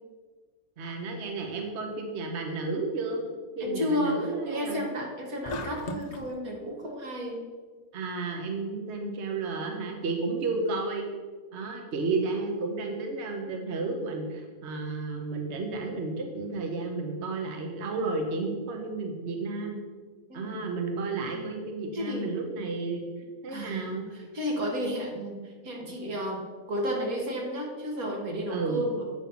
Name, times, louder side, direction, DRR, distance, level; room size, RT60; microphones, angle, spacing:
voice 1, 0.8-3.2 3.6-4.8 7.9-11.1 11.5-19.8 20.3-23.1 23.4-24.1 28.5-28.8, right 3 dB, 55° right, 2 dB, 1.2 m, -32 dB
voice 2, 3.6-7.4 20.3-20.6 21.3-21.6 21.9-22.3 23.5-26.4 26.7-29.0, equal, 80° right, -1 dB, 2.1 m, -32 dB
sound 1, 5.4-6.3, left 1 dB, 50° left, 0.5 m, -36 dB
8.4 x 5.5 x 5.7 m, 1.5 s
omnidirectional pair, 1.5 m